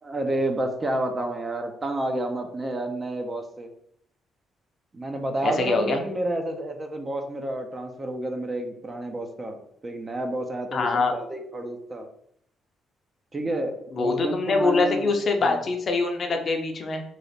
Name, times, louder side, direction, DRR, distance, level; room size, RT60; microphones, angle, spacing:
voice 1, 0.0-3.7 4.9-12.1 13.3-15.1 15.4-15.7, right 1 dB, 30° right, 5 dB, 0.6 m, -30 dB
voice 2, 5.4-6.0 10.7-11.1 13.9-17.0, left 3 dB, 50° left, 4 dB, 0.6 m, -24 dB
3.2 x 2.4 x 4.1 m, 0.68 s
cardioid pair, 90°, 0 cm